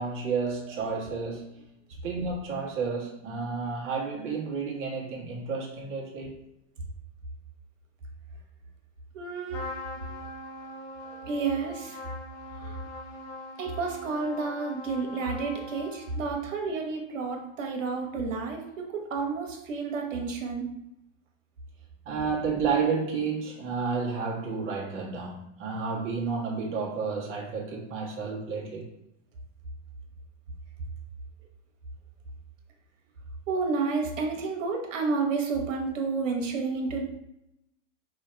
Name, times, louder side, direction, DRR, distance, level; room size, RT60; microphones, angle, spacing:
voice 1, 0.0-1.6 2.0-6.4 10.0-10.1 11.0-11.3 12.6-12.8 22.0-28.9, right 5 dB, 35° right, -3 dB, 1.5 m, -31 dB
voice 2, 9.1-9.7 11.3-12.0 12.6-12.8 13.6-20.7 33.5-37.0, right 4 dB, 85° right, 1 dB, 1.3 m, -30 dB
Trumpet, 9.5-16.4, left 2 dB, 45° left, 1.3 m, -42 dB
5.5 x 2.9 x 3.3 m, 0.83 s
hypercardioid pair, 120°, 38 cm